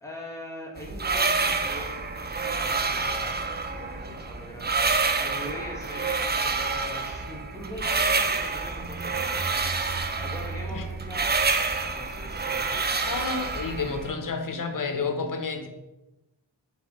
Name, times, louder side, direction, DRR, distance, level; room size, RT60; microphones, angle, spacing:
voice 1, 0.0-2.1 2.4-9.5 10.0-11.5 11.9-12.8, left 1 dB, 5° left, -3 dB, 1.2 m, -42 dB
sound 1, 0.8-14.1, right 4 dB, 25° right, 0.4 m, -28 dB
sound 2, 8.8-13.0, right 4 dB, 65° right, 0.7 m, -40 dB
voice 2, 13.0-15.7, left 4 dB, 45° left, 6 dB, 0.7 m, -30 dB
3.4 x 3.3 x 4.0 m, 1.0 s
cardioid pair, 40°, 45 cm